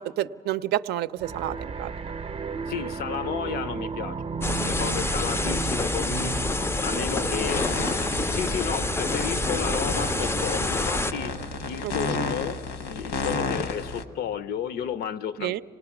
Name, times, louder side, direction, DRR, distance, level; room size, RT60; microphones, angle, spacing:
voice 1, 0.0-1.9 11.8-12.2 15.4-15.6, right 13 dB, 75° right, 0.5 m, -30 dB
sound 1, 1.2-11.8, right 5 dB, 35° right, 0.6 m, -34 dB
voice 2, 2.7-4.2 4.6-6.4 6.8-7.7 8.3-11.4 11.7-12.6 12.9-15.6, left 8 dB, 70° left, 0.6 m, -32 dB
sound 2, 4.4-11.1, left 2 dB, 15° left, 0.4 m, -27 dB
sound 3, 7.5-8.6 9.0-14.0, left 3 dB, 90° left, 1.3 m, -32 dB
26.5 x 19.0 x 5.9 m
cardioid pair, 110°, 17 cm